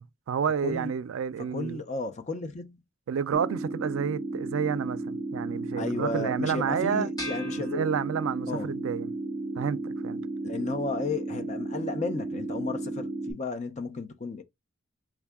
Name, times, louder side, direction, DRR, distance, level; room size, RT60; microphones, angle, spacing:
voice 1, 0.0-1.8 3.1-7.1 7.6-9.1 9.6-10.2, right 7 dB, 70° right, 0.3 m, -30 dB
voice 2, 1.4-2.8 5.8-7.9 8.5-8.7 10.4-14.4, left 3 dB, 35° left, 0.4 m, -33 dB
sound 1, 3.3-13.3, right 2 dB, 15° right, 1.0 m, -34 dB
sound 2, 7.2-8.7, left 1 dB, 15° left, 1.0 m, -41 dB
3.5 x 2.3 x 3.5 m
head